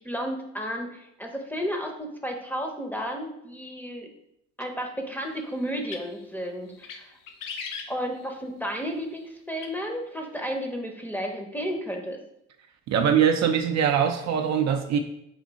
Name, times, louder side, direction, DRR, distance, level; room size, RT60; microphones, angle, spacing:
voice 1, 0.0-4.1 4.6-7.2 7.9-12.2, equal, 5° left, 2 dB, 0.7 m, -32 dB
sound 1, 5.7-6.2 6.7-7.0 7.3-8.4 9.6-9.7, left 6 dB, 70° left, 0.6 m, -38 dB
voice 2, 12.9-15.0, right 8 dB, 55° right, 6 dB, 0.5 m, -22 dB
3.5 x 2.6 x 3.9 m, 0.80 s
supercardioid pair, 65°, 34 cm